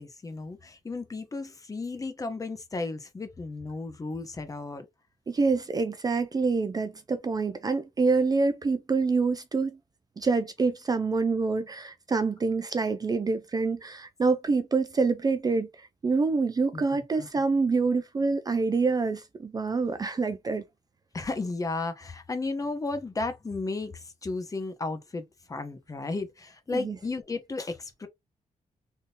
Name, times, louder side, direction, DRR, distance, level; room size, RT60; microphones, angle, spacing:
voice 1, 0.0-4.9 16.7-17.3 21.1-28.1, left 3 dB, 25° left, 0.7 m, -34 dB
voice 2, 5.3-9.8 10.2-20.6 26.7-27.0, right 4 dB, 30° right, 0.4 m, -26 dB
3.6 x 2.7 x 2.6 m
wide cardioid pair, 135°, 14 cm